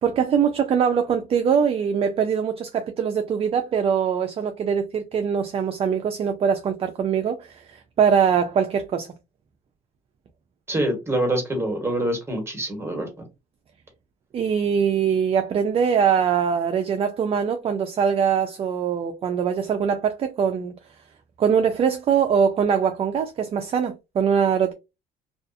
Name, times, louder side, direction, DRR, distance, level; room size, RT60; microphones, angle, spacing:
voice 1, 0.0-9.1 14.3-20.7 21.4-24.7, right 7 dB, 35° right, 0.4 m, -22 dB
voice 2, 10.7-13.3, right 1 dB, 15° right, 1.2 m, -25 dB
2.4 x 2.4 x 2.5 m
cardioid pair, 110°, 17 cm